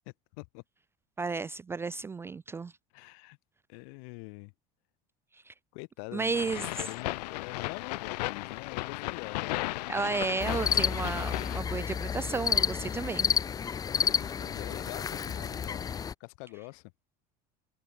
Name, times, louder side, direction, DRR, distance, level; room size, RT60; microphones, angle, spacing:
voice 1, 1.2-2.7 5.5-5.6 6.1-6.7 9.9-13.3, right 4 dB, 10° right, 0.4 m, -33 dB
voice 2, 2.9-3.4 3.7-4.5 5.7-10.1 10.5-10.8 13.9-16.9, left 39 dB, 65° left, 2.9 m, -45 dB
sound 1, 6.3-11.6, left 21 dB, 85° left, 1.1 m, -35 dB
sound 2, 10.4-16.1, left 7 dB, 20° left, 0.7 m, -30 dB
supercardioid pair, 150°, 20 cm